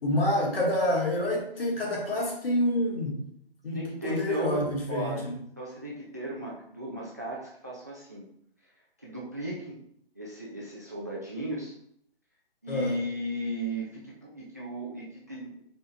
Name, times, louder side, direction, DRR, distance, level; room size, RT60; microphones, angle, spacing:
voice 1, 0.0-3.2 3.6-3.8 4.0-5.4 12.7-12.9, left 1 dB, 65° left, -1 dB, 1.7 m, -27 dB
voice 2, 3.7-5.3 5.6-8.2 9.0-9.8 10.2-11.7 12.6-15.7, right 1 dB, 20° right, -3 dB, 0.3 m, -36 dB
5.2 x 3.9 x 2.3 m, 0.69 s
figure-of-eight pair, 145°, 31 cm